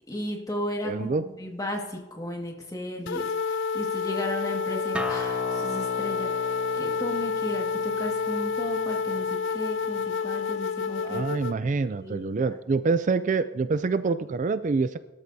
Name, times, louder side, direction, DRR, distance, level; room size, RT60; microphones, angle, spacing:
voice 1, 0.1-12.5, left 1 dB, 20° left, 1 dB, 1.9 m, -35 dB
voice 2, 0.8-1.3 11.0-15.0, right 4 dB, 40° right, 12 dB, 0.4 m, -26 dB
sound 1, 3.1-11.6, left 5 dB, 75° left, 0.4 m, -29 dB
Acoustic guitar, 4.9-10.1, equal, 5° right, 0.7 m, -39 dB
24.0 x 13.0 x 2.7 m, 1.1 s
head